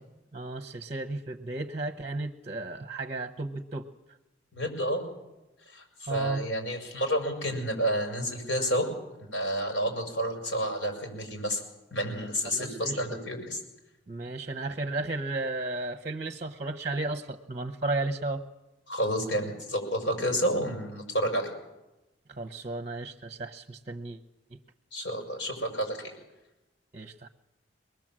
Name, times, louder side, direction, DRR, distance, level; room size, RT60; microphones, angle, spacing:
voice 1, 0.3-3.9 6.1-6.4 12.4-13.0 14.1-18.4 22.3-24.2 26.9-27.3, right 2 dB, 40° right, 7 dB, 0.8 m, -34 dB
voice 2, 4.5-5.0 5.7-8.9 9.3-11.6 11.9-13.6 18.9-21.5 24.9-26.1, equal, 70° left, 3 dB, 6.2 m, -30 dB
24.0 x 20.0 x 7.5 m, 1.0 s
head